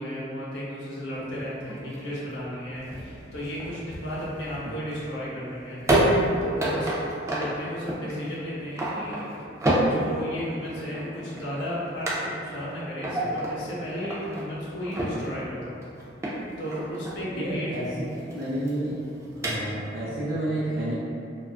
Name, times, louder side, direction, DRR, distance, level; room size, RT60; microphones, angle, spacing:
voice 1, 0.0-5.8 6.4-9.2 9.6-15.8 16.6-17.7, equal, 75° left, -8 dB, 0.6 m, -34 dB
sound 1, 1.2-20.0, right 1 dB, 15° right, 0.3 m, -30 dB
voice 2, 17.3-17.8 18.1-19.0 19.3-20.9, right 1 dB, 75° right, -11 dB, 0.5 m, -30 dB
2.4 x 2.2 x 2.3 m, 2.5 s
head